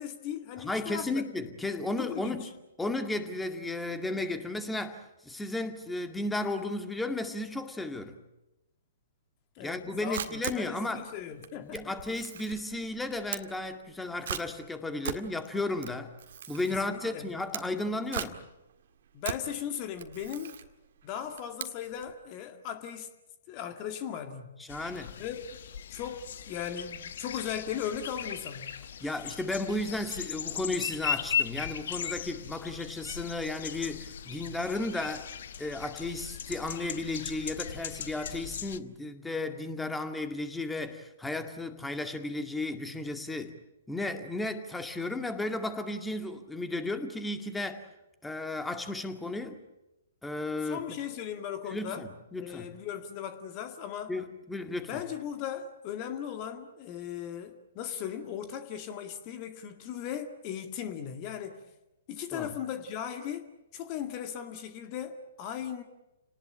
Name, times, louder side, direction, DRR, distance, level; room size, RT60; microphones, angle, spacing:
voice 1, 0.0-1.2 2.0-2.5 9.6-11.9 16.8-17.3 19.1-20.6 21.0-23.1 23.5-24.6 25.2-25.6 25.9-28.8 50.6-52.1 52.4-54.1 54.8-61.6 62.1-65.8, left 9 dB, 35° left, 8 dB, 2.0 m, -38 dB
voice 2, 0.6-2.5 2.8-8.2 9.6-11.0 11.6-16.1 16.5-18.4 24.6-25.2 29.0-35.3 35.6-43.5 43.9-47.9 48.2-49.6 50.2-50.8 51.7-52.7 54.1-55.0 62.3-62.5, left 2 dB, 5° left, 7 dB, 2.2 m, -34 dB
Camera, 9.7-22.2, right 8 dB, 55° right, 1.9 m, -40 dB
sound 1, 24.7-38.8, left 8 dB, 55° left, 1.1 m, -38 dB
29.5 x 19.0 x 8.8 m, 0.96 s
figure-of-eight pair, 120°, 0 cm